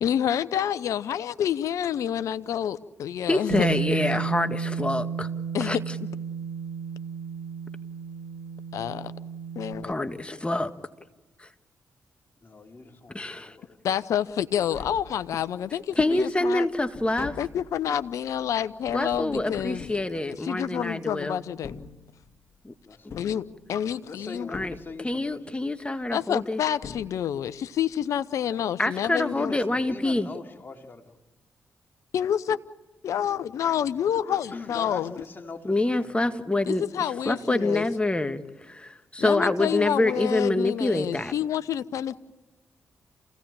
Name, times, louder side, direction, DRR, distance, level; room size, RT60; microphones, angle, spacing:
voice 1, 0.0-3.8 5.5-5.8 8.7-9.1 9.6-9.9 13.8-16.7 17.4-19.8 20.1-20.2 20.4-21.7 23.2-24.5 26.1-29.5 32.1-32.6 33.0-35.1 36.7-37.9 39.2-42.2, left 9 dB, 70° left, 0.8 m, -28 dB
voice 2, 3.3-5.3 5.6-5.8 9.8-10.7 11.4-11.5 13.1-13.6 16.0-17.4 18.9-21.4 22.6-22.7 23.1-23.2 24.5-24.7 25.0-26.6 28.8-30.3 35.6-38.4 38.7-41.3, left 2 dB, 20° left, 1.8 m, -26 dB
Bass guitar, 3.5-9.8, right 6 dB, 75° right, 1.6 m, -33 dB
voice 3, 12.4-13.8 22.9-23.3 24.0-25.6 29.3-31.2 34.3-36.3 37.1-38.4 39.6-39.8, left 3 dB, 40° left, 3.6 m, -42 dB
Tap, 14.3-14.4 14.6-15.7 16.1-20.9 21.5-22.5 23.1-24.1 24.5-25.4 26.4-26.5 26.8-27.7 27.9-28.0, left 6 dB, 55° left, 1.8 m, -44 dB
28.5 x 16.5 x 8.8 m
hypercardioid pair, 40°, 6 cm